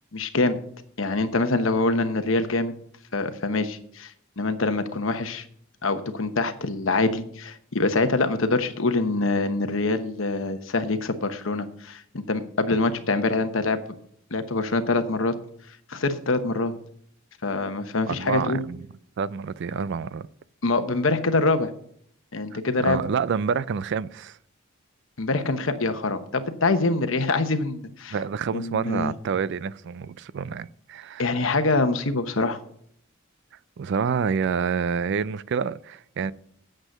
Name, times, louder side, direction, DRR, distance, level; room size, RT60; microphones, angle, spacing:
voice 1, 0.1-0.6 1.0-2.7 3.1-5.5 5.8-13.8 14.3-15.3 15.9-16.7 17.4-18.6 20.6-21.7 22.3-23.0 25.2-28.2 28.5-29.1 31.2-32.6, left 3 dB, 70° left, 1.1 m, -25 dB
voice 2, 18.1-18.9 19.2-20.3 22.8-24.4 28.1-31.3 33.8-36.3, right 6 dB, 60° right, 0.4 m, -28 dB
9.1 x 7.6 x 6.5 m
head